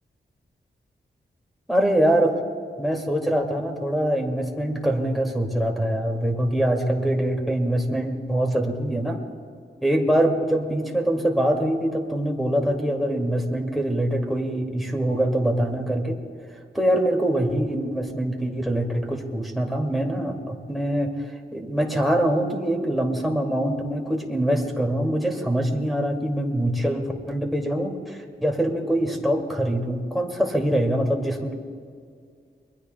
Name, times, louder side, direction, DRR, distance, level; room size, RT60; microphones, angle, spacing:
voice 1, 1.7-2.4 2.8-9.2 9.8-16.2 16.7-31.5, right 1 dB, ahead, 0 dB, 2.2 m, -24 dB
26.5 x 22.0 x 2.3 m, 2.1 s
wide cardioid pair, 125°, 19 cm